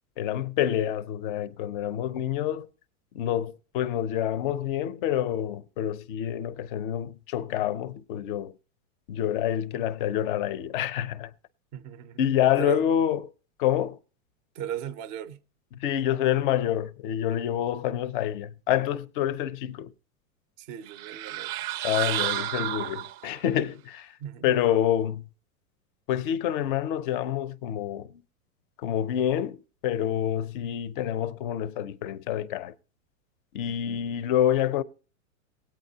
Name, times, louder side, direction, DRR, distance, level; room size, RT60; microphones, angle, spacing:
voice 1, 0.2-2.7 3.1-8.5 9.1-11.3 12.2-13.2 13.6-14.0 15.8-19.9 21.8-24.2 24.4-25.3 26.1-28.2 28.8-29.6 29.8-32.7 33.5-34.8, left 11 dB, 40° left, 0.5 m, -27 dB
voice 2, 11.7-12.8 14.5-15.4 20.6-21.6 24.2-24.6, right 10 dB, 25° right, 0.4 m, -37 dB
sound 1, 20.9-23.5, right 14 dB, 85° right, 0.6 m, -31 dB
19.5 x 8.8 x 2.7 m
supercardioid pair, 150°, 42 cm